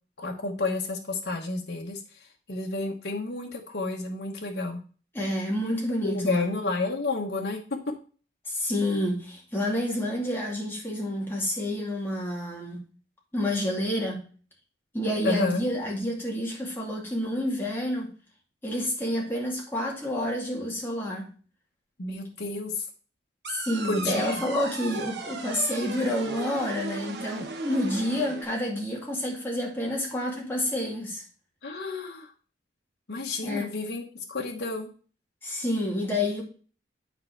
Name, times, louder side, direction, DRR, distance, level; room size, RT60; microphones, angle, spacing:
voice 1, 0.2-4.8 6.0-7.6 15.2-15.6 22.0-22.8 23.8-24.4 31.6-32.3 33.1-34.9, left 3 dB, 70° left, 1.1 m, -31 dB
voice 2, 5.1-6.5 8.5-12.9 13.3-14.2 14.9-18.1 18.6-21.3 23.5-31.2 33.4-33.7 35.4-36.4, left 1 dB, 10° left, 2.3 m, -29 dB
sound 1, 23.4-28.4, right 3 dB, 65° right, 1.0 m, -37 dB
9.6 x 4.5 x 4.5 m
head